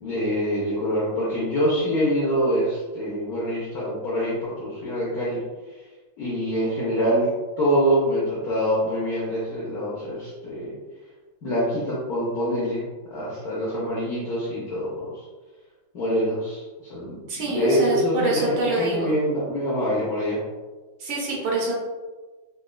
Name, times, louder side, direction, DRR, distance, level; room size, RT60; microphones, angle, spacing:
voice 1, 0.0-5.4 6.2-7.3 7.6-10.7 11.4-12.8 13.1-15.1 15.9-20.4, equal, 65° left, -7 dB, 0.9 m, -25 dB
voice 2, 17.3-19.1 21.0-21.8, right 2 dB, 75° right, -3 dB, 1.7 m, -26 dB
4.0 x 2.3 x 2.2 m, 1.3 s
omnidirectional pair, 2.4 m